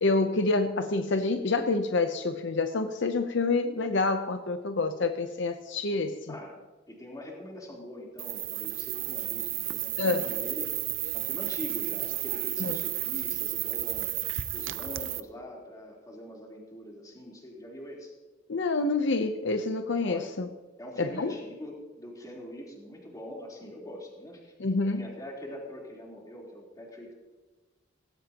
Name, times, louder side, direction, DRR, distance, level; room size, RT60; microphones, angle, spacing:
voice 1, 0.0-6.3 10.0-10.3 12.6-12.8 18.5-20.5 21.0-21.3 24.6-25.1, left 3 dB, 65° left, 7 dB, 0.8 m, -27 dB
voice 2, 6.3-10.7 11.1-14.1 14.5-18.1 20.0-20.4 20.8-24.5 25.0-27.1, left 1 dB, 20° left, -3 dB, 3.8 m, -43 dB
sound 1, 8.2-15.2, right 16 dB, 80° right, 0.6 m, -32 dB
17.5 x 16.5 x 3.0 m, 1.3 s
head